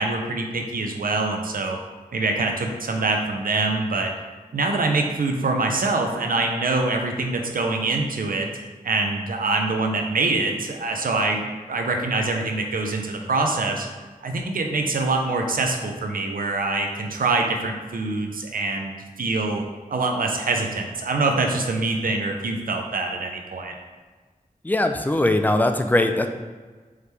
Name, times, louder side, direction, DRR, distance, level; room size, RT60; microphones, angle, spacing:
voice 1, 0.0-1.8 2.1-4.1 4.5-8.5 8.8-13.9 14.2-19.6 19.9-23.7, right 3 dB, 85° right, 3 dB, 0.5 m, -24 dB
voice 2, 24.6-26.3, left 1 dB, 10° left, 7 dB, 0.4 m, -20 dB
4.7 x 3.3 x 3.1 m, 1.4 s
wide cardioid pair, 55°, 14 cm